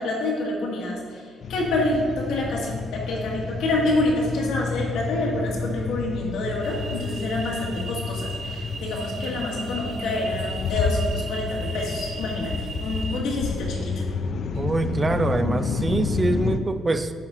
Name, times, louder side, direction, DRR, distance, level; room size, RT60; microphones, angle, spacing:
voice 1, 0.0-14.0, left 2 dB, 85° left, -3 dB, 1.8 m, -27 dB
sound 1, 1.4-16.6, left 4 dB, 60° left, 0.5 m, -30 dB
sound 2, 6.6-13.2, right 4 dB, 60° right, 0.8 m, -38 dB
voice 2, 14.6-17.1, right 2 dB, 25° right, 10 dB, 0.4 m, -24 dB
10.5 x 4.2 x 3.7 m, 2.1 s
cardioid pair, 90°, 0 cm